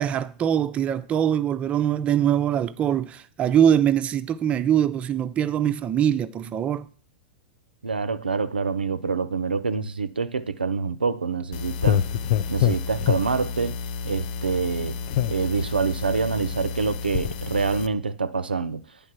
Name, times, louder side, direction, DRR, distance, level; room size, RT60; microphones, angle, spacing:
voice 1, 0.0-6.9, right 9 dB, 25° right, 0.4 m, -23 dB
voice 2, 7.8-12.0 12.5-13.8 14.0-15.0 15.3-18.8, right 4 dB, 85° right, 0.4 m, -26 dB
sound 1, 11.5-17.9, left 9 dB, 50° left, 0.4 m, -27 dB
9.6 x 3.5 x 5.9 m
figure-of-eight pair, 100°, 5 cm